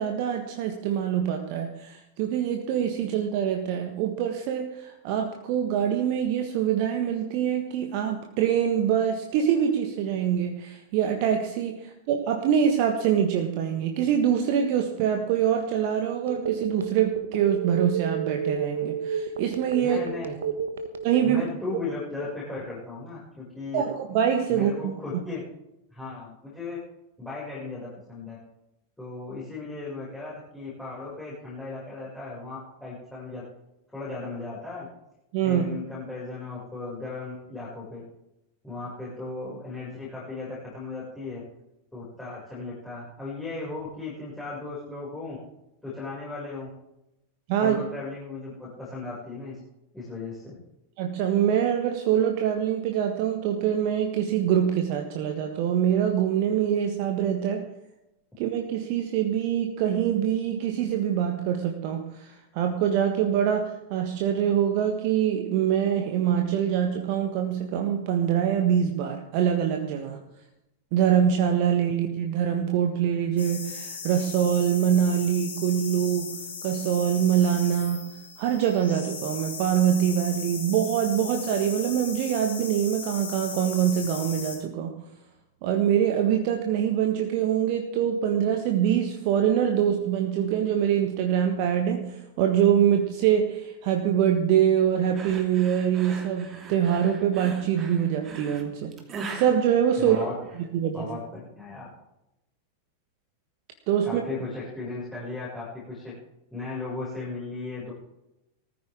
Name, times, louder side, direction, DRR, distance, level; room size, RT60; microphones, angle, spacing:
voice 1, 0.0-20.0 21.0-21.4 23.7-24.9 35.3-35.7 47.5-47.8 51.0-57.7 58.4-70.2 70.9-76.3 76.6-78.1 78.4-85.0 85.6-98.9 99.3-100.2 100.7-101.1 103.9-104.2, right 9 dB, 45° right, 4 dB, 1.5 m, -24 dB
Telephone, 16.3-21.5, right 7 dB, 65° right, 1.4 m, -30 dB
voice 2, 19.8-20.4 21.2-23.8 24.5-25.4 25.9-26.8 27.2-28.4 29.0-33.4 33.9-34.9 35.4-38.0 38.6-41.4 41.9-45.4 45.8-46.7 47.6-49.6 49.9-50.5 100.0-100.3 100.9-101.9 104.0-106.1 106.5-107.9, left 3 dB, 5° left, -8 dB, 6.3 m, -36 dB
sound 1, 73.4-84.6, left 5 dB, 70° left, 5.3 m, -37 dB
sound 2, 95.1-100.7, right 4 dB, 25° right, 2.8 m, -41 dB
20.0 x 14.0 x 3.7 m, 0.90 s
figure-of-eight pair, 90°, 0 cm